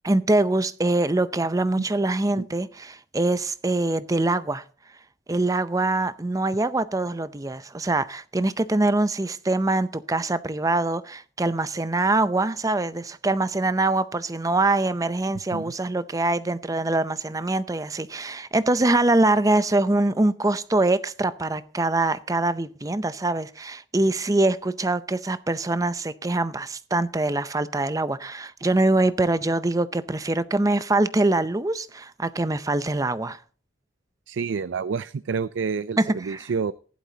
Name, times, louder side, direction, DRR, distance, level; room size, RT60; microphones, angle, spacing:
voice 1, 0.0-4.6 5.3-33.4 36.0-36.5, right 2 dB, 20° right, 0.5 m, -24 dB
voice 2, 34.3-36.7, right 5 dB, 75° right, 0.4 m, -28 dB
15.0 x 11.5 x 2.8 m
head